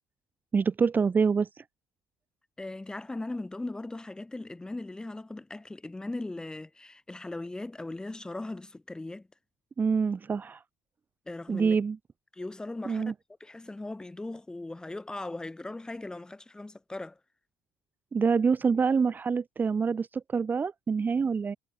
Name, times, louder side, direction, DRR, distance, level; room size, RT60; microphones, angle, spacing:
voice 1, 0.5-1.6 9.8-10.6 11.5-12.0 12.9-13.1 18.1-21.6, right 5 dB, 25° right, 1.7 m, -26 dB
voice 2, 2.6-9.3 11.3-11.8 12.3-13.1 13.4-17.2, left 2 dB, 10° left, 7.0 m, -38 dB
cardioid pair, 135°, 8 cm